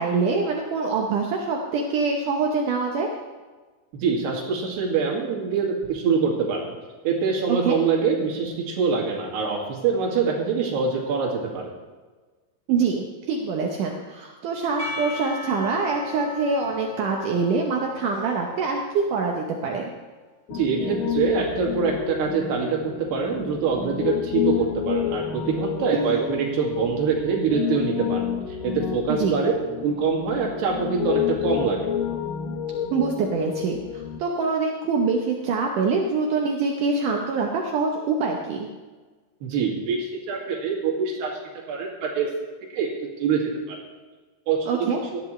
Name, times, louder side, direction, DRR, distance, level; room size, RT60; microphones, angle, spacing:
voice 1, 0.0-3.1 7.6-7.8 12.7-19.9 25.9-26.3 29.1-29.4 32.9-38.7 44.7-45.0, right 4 dB, 85° right, 1 dB, 1.8 m, -25 dB
voice 2, 3.9-6.6 7.0-11.7 20.5-28.2 28.6-29.5 29.8-31.8 39.4-41.3 41.7-42.3 42.7-42.9 43.2-43.4 43.7-43.8 44.5-44.6 45.1-45.2, right 5 dB, 65° right, -1 dB, 4.2 m, -24 dB
Percussion / Church bell, 14.8-19.8, left 4 dB, 20° right, 3.1 m, -37 dB
Piano, 20.5-34.2, left 9 dB, 90° left, 1.9 m, -29 dB
17.5 x 13.0 x 3.3 m, 1.3 s
omnidirectional pair, 5.3 m